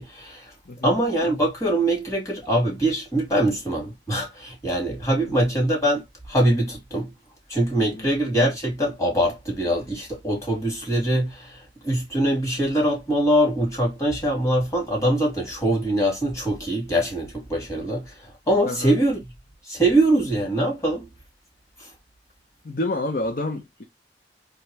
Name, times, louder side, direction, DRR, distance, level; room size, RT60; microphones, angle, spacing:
voice 1, 0.0-0.5 0.8-7.1 7.5-19.2 19.7-21.1 21.8-21.9, right 1 dB, 20° left, 2.5 m, -23 dB
voice 2, 22.6-23.8, left 2 dB, 50° left, 0.7 m, -29 dB
3.8 x 3.4 x 3.1 m
head